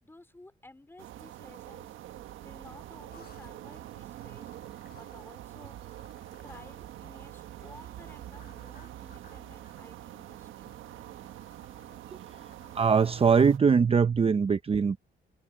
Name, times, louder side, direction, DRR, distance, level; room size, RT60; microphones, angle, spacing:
voice 1, 0.0-1.9 2.4-4.5 4.9-5.8 6.4-10.6, left 2 dB, 10° left, 3.7 m, -54 dB
sound 1, 1.0-13.6, right 13 dB, 85° right, 1.4 m, -45 dB
sound 2, 3.1-14.0, left 8 dB, 55° left, 4.0 m, -62 dB
voice 2, 12.7-15.0, right 6 dB, 30° right, 0.7 m, -22 dB
cardioid pair, 90°, 20 cm